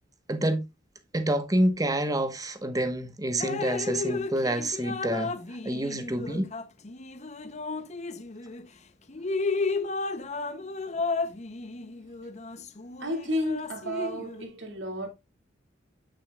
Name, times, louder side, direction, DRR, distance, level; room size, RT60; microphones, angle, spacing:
voice 1, 0.3-0.6 1.1-5.3 5.6-6.5, right 1 dB, 20° right, 1.2 m, -27 dB
Drip, 3.4-8.7 9.1-14.4, left 3 dB, 40° left, 0.7 m, -33 dB
voice 2, 13.0-15.1, equal, 80° right, 2.4 m, -32 dB
9.1 x 8.6 x 2.3 m
head